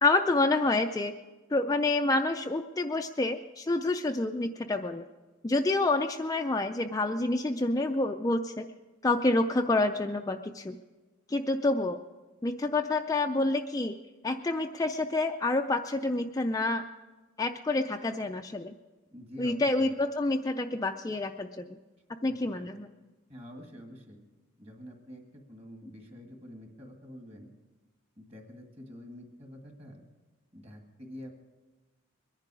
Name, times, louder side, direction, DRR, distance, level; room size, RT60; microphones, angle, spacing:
voice 1, 0.0-1.1 1.5-5.0 5.4-8.7 9.0-10.8 11.3-12.0 12.4-14.0 14.2-16.8 17.4-18.7 19.4-21.8 22.2-22.9, left 2 dB, 15° left, 5 dB, 0.4 m, -28 dB
voice 2, 19.1-19.9 22.2-22.7 23.3-24.2 24.6-27.5 28.2-30.0 30.5-31.3, equal, 30° right, 3 dB, 2.0 m, -47 dB
22.0 x 10.5 x 4.9 m, 1.2 s
head